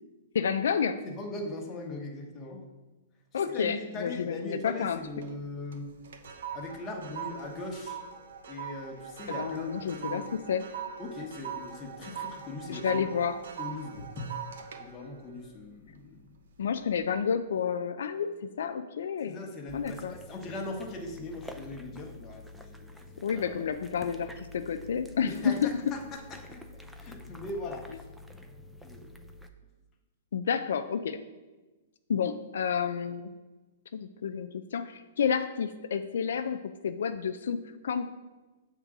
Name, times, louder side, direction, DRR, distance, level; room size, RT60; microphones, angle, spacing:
voice 1, 0.3-1.0 3.3-5.0 9.3-10.6 12.7-13.4 16.6-19.4 19.7-20.1 23.2-25.9 30.3-31.2 32.1-33.3 33.9-36.6 36.8-38.0, left 7 dB, 75° left, 9 dB, 0.4 m, -30 dB
voice 2, 1.0-2.6 3.4-5.9 6.5-8.0 8.5-10.3 11.0-13.1 13.6-14.3 14.8-16.2 19.3-23.6 25.2-25.6 25.9-26.6 27.0-27.9 28.8-29.1, left 2 dB, 20° left, 0 dB, 1.0 m, -40 dB
sound 1, 4.9-5.4 5.7-16.3 16.7-17.0, right 7 dB, 75° right, 0.8 m, -41 dB
sound 2, 19.7-29.5, left 1 dB, ahead, 0.4 m, -48 dB
6.8 x 3.7 x 6.0 m, 1.2 s
hypercardioid pair, 160°, 0 cm